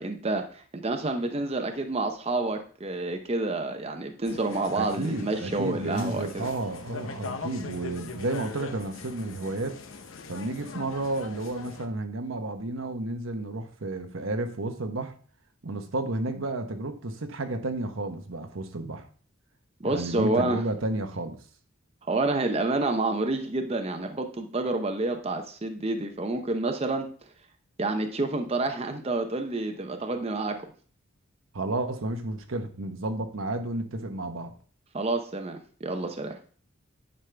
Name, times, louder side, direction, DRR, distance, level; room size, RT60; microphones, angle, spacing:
voice 1, 0.0-6.5 19.8-20.6 22.1-27.1 27.8-30.6 34.9-36.4, right 2 dB, 30° right, 5 dB, 0.6 m, -29 dB
sound 1, 4.3-11.9, left 3 dB, 80° left, 0.8 m, -41 dB
voice 2, 4.8-9.8 10.3-15.1 15.6-19.1 19.8-21.4 31.5-34.5, right 2 dB, 85° right, 6 dB, 1.1 m, -32 dB
9.9 x 5.4 x 3.3 m, 0.43 s
head